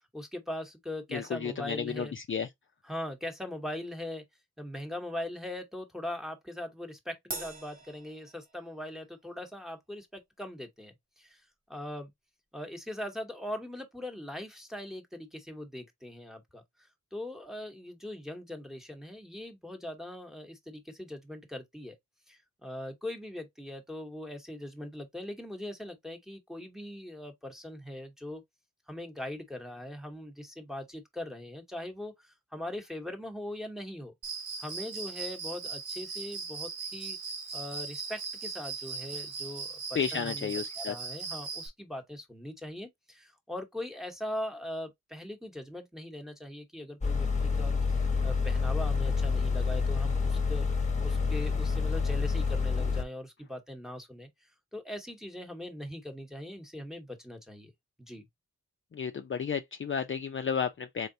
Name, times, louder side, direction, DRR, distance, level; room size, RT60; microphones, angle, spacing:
voice 1, 0.1-2.1 2.8-4.2 4.6-11.4 11.7-12.1 12.5-16.6 17.1-22.0 22.3-28.4 28.9-34.1 34.6-37.2 37.5-40.5 40.8-50.7 51.0-54.3 54.7-57.7 58.0-58.3, left 1 dB, ahead, 1.0 m, -40 dB
voice 2, 1.1-2.5 39.9-40.9 58.9-61.1, left 6 dB, 40° left, 0.5 m, -32 dB
Crash cymbal, 7.3-9.0, right 2 dB, 30° right, 1.0 m, -42 dB
Cricket, 34.2-41.7, right 5 dB, 70° right, 1.8 m, -39 dB
sound 1, 47.0-53.0, left 4 dB, 25° left, 1.0 m, -28 dB
3.7 x 3.4 x 2.6 m
cardioid pair, 75°, 31 cm